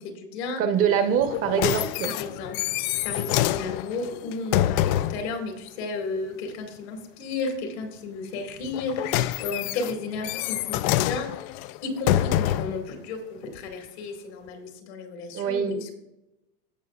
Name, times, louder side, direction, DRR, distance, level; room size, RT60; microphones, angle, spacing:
voice 1, 0.0-0.6 2.1-2.7 3.0-11.5 11.8-15.9, left 3 dB, 75° left, 3 dB, 2.2 m, -33 dB
voice 2, 0.6-2.1 15.3-15.8, right 8 dB, 40° right, 8 dB, 1.0 m, -24 dB
sound 1, 1.2-5.3 8.6-12.8 13.6-13.7, left 13 dB, 60° left, 0.4 m, -26 dB
15.5 x 5.6 x 2.4 m, 0.93 s
supercardioid pair, 130°, 32 cm